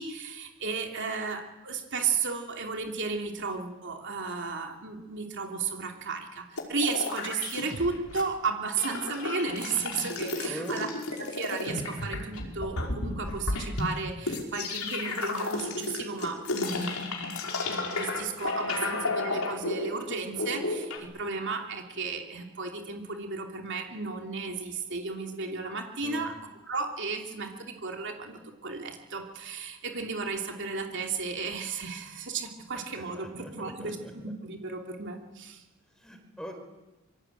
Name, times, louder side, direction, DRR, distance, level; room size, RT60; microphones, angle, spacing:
voice 1, 0.0-10.9 11.3-16.9 17.6-26.3 26.7-34.0 34.2-35.6, right 4 dB, 55° right, 3 dB, 3.0 m, -34 dB
sound 1, 6.6-8.2 8.5-21.0, left 3 dB, 75° left, 5.3 m, -33 dB
voice 2, 10.4-10.9 18.7-19.0 26.0-26.3 32.7-34.1 35.9-36.5, equal, 5° left, 5 dB, 4.6 m, -43 dB
26.0 x 25.0 x 9.1 m, 1.1 s
head